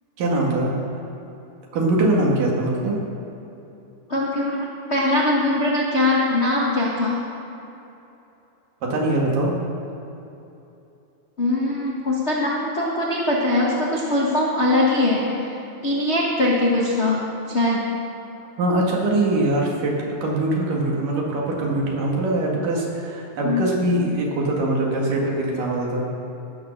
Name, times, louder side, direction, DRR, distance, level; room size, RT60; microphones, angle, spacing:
voice 1, 0.2-0.7 1.7-3.0 8.9-9.5 18.6-19.9 20.2-26.1, right 2 dB, 85° right, -2 dB, 3.6 m, -22 dB
voice 2, 4.1-7.2 11.4-15.5 15.8-17.8 23.4-23.6, left 2 dB, 80° left, -5 dB, 0.6 m, -21 dB
16.5 x 6.6 x 6.6 m, 2.9 s
omnidirectional pair, 3.7 m